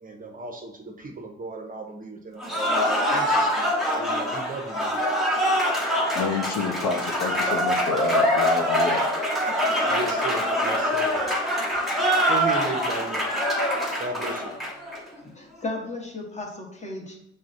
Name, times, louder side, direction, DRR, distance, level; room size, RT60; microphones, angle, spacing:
voice 1, 0.0-5.2 9.9-11.2 12.3-13.2 14.0-14.6, right 2 dB, 30° right, 2 dB, 0.6 m, -36 dB
Cheering / Applause, 2.4-15.0, equal, ahead, 0.9 m, -24 dB
voice 2, 6.1-9.0, left 5 dB, 75° left, 4 dB, 0.6 m, -29 dB
voice 3, 15.1-17.2, left 2 dB, 25° left, 0 dB, 1.0 m, -35 dB
6.0 x 2.1 x 2.5 m, 0.74 s
cardioid pair, 90°, 30 cm